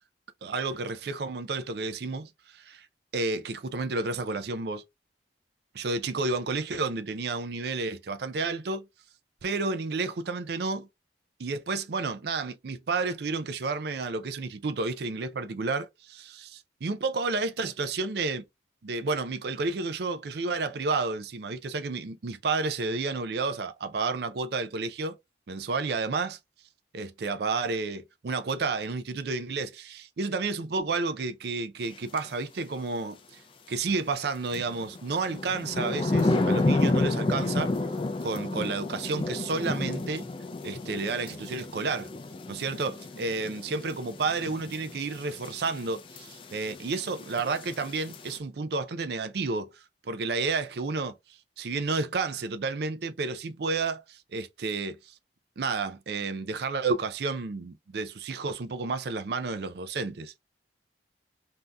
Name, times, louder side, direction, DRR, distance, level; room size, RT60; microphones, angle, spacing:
voice 1, 0.4-2.9 3.1-4.8 5.7-8.8 9.4-10.9 11.4-18.4 18.8-25.2 25.5-26.4 26.9-33.4 33.7-37.7 38.2-40.3 40.6-42.1 42.5-55.1 55.6-60.3, right 3 dB, 60° right, 0.4 m, -31 dB
sound 1, 32.1-32.3 34.5-48.4, left 2 dB, 30° left, 0.4 m, -31 dB
3.4 x 2.7 x 2.2 m
head